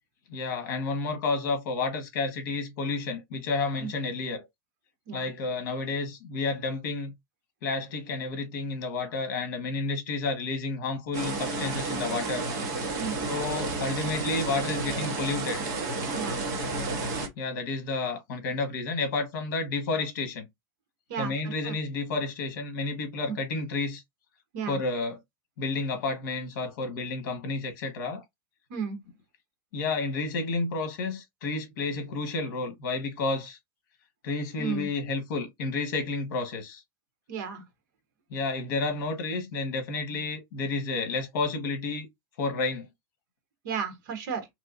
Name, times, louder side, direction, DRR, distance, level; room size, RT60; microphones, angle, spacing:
voice 1, 0.3-4.5 5.1-7.1 7.6-12.4 13.3-15.6 17.4-20.5 21.2-24.0 24.7-25.2 25.6-28.2 29.7-33.6 34.2-36.8 38.3-42.1 42.4-42.9, left 3 dB, 55° left, 1.4 m, -31 dB
sound 1, 11.1-17.3, right 3 dB, 30° right, 0.9 m, -31 dB
voice 2, 34.6-34.9 37.3-37.6 43.6-44.5, right 6 dB, 55° right, 1.3 m, -33 dB
3.7 x 3.1 x 2.6 m
supercardioid pair, 170°, 12 cm